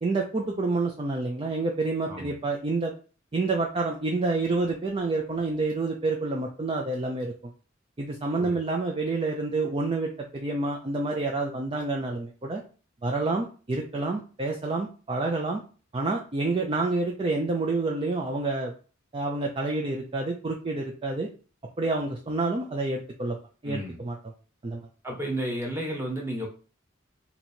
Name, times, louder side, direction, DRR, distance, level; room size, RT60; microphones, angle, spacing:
voice 1, 0.0-2.9 3.3-7.3 8.0-12.6 13.0-15.6 15.9-18.7 19.1-21.3 21.8-23.4 23.6-24.2 24.6-24.8, right 3 dB, 30° right, 0 dB, 0.4 m, -28 dB
voice 2, 23.6-24.0 25.0-26.5, right 1 dB, 15° right, 0 dB, 1.1 m, -32 dB
3.0 x 2.7 x 4.2 m, 0.37 s
head